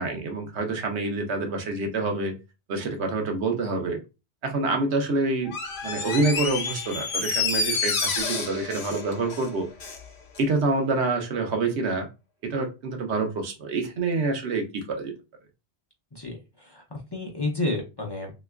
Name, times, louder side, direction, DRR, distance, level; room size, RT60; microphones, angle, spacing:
voice 1, 0.0-2.3 2.7-4.0 4.4-5.5 5.8-9.7 10.4-12.1 12.4-15.1, right 3 dB, 85° right, 1.0 m, -27 dB
Door, 5.5-10.0 10.4-10.5, left 4 dB, 75° left, 1.0 m, -29 dB
voice 2, 16.1-18.3, left 2 dB, 25° left, 0.6 m, -31 dB
3.3 x 2.9 x 2.3 m
omnidirectional pair, 1.1 m